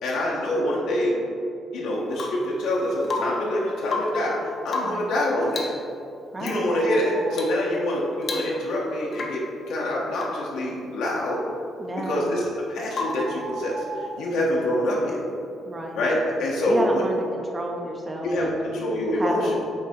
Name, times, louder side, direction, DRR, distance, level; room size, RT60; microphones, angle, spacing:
voice 1, 0.0-1.2 1.7-5.7 6.4-11.4 12.0-12.4 12.7-15.2 15.9-17.0 18.2-19.6, left 1 dB, 80° left, -4 dB, 1.3 m, -25 dB
Rain / Water tap faucet / Drip, 2.1-2.5 3.0-3.5 3.8-4.3 4.7-5.1 5.5-5.8 6.4-6.6 7.3-7.6 7.9-8.0 8.2-8.8 9.1-9.5 10.1-10.5 12.9-13.3 15.2-15.3, left 3 dB, 40° left, 0.9 m, -32 dB
voice 2, 6.3-6.7 11.8-12.3 15.6-16.0 16.7-18.7 19.1-19.6, right 1 dB, 15° right, 1 dB, 0.6 m, -30 dB
sound 1, 6.7-7.6 12.2-12.3 13.0-14.3, right 4 dB, 75° right, 0.6 m, -37 dB
9.8 x 3.6 x 4.4 m, 2.6 s
cardioid pair, 165°, 0 cm